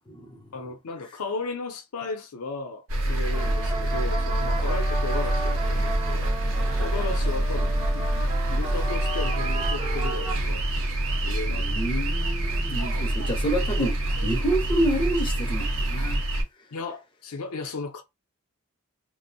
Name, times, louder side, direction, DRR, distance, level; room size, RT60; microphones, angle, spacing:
voice 1, 0.5-6.3 6.8-8.2 8.5-10.7 11.2-11.7 11.9-12.0 16.7-18.0, left 3 dB, 90° left, 0.5 m, -35 dB
sound 1, 2.9-16.4, right 1 dB, 65° right, 0.7 m, -26 dB
sound 2, 3.3-10.3, right 2 dB, 25° right, 0.6 m, -34 dB
voice 2, 11.5-16.2, right 1 dB, 20° left, 0.5 m, -28 dB
2.5 x 2.0 x 2.6 m
head